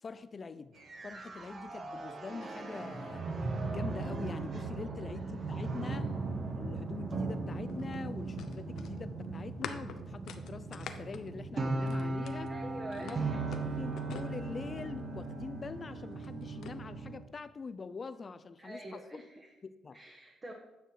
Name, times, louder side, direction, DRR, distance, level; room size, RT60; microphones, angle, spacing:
voice 1, 0.0-3.3 3.7-6.2 6.5-12.5 13.0-13.5 13.8-19.2 19.6-20.0, left 4 dB, 35° left, 13 dB, 0.5 m, -44 dB
sound 1, 0.7-17.2, right 3 dB, 45° right, 1.4 m, -38 dB
sound 2, 7.2-12.5 12.9-15.0 16.0-16.8, left 7 dB, 75° left, 0.7 m, -46 dB
voice 2, 12.5-13.4 18.6-19.5 19.9-20.5, right 1 dB, 30° right, -1 dB, 1.3 m, -46 dB
9.1 x 5.9 x 4.9 m, 1.0 s
cardioid pair, 90°, 0 cm